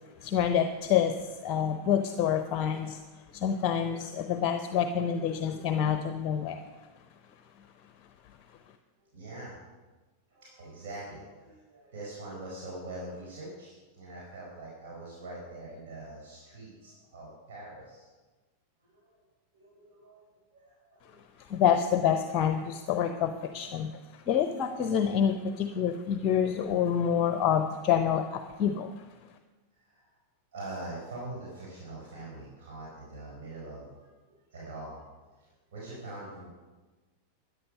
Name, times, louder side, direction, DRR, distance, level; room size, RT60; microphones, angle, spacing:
voice 1, 0.2-1.2 1.4-3.0 3.3-6.6 21.5-23.9 24.3-28.9, left 8 dB, 35° left, 8 dB, 0.8 m, -27 dB
voice 2, 9.1-9.6 10.3-18.1 18.8-19.2 19.5-20.2 20.5-21.2 21.4-21.8 29.8-30.1 30.5-35.1 35.4-36.5, right 2 dB, 55° right, -5 dB, 4.6 m, -44 dB
13.0 x 9.9 x 5.6 m, 1.3 s
figure-of-eight pair, 90°, 0 cm